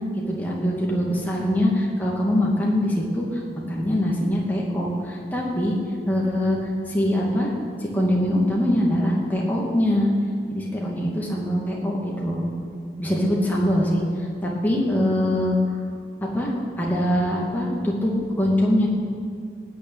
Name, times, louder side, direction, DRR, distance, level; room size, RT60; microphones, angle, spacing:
voice 1, 0.3-5.8 6.1-6.6 6.9-7.5 7.8-10.1 10.5-12.5 13.0-14.0 14.4-15.6 16.3-16.5 16.8-18.9, left 1 dB, 10° left, -3 dB, 2.4 m, -23 dB
18.0 x 6.8 x 9.5 m, 2.2 s
head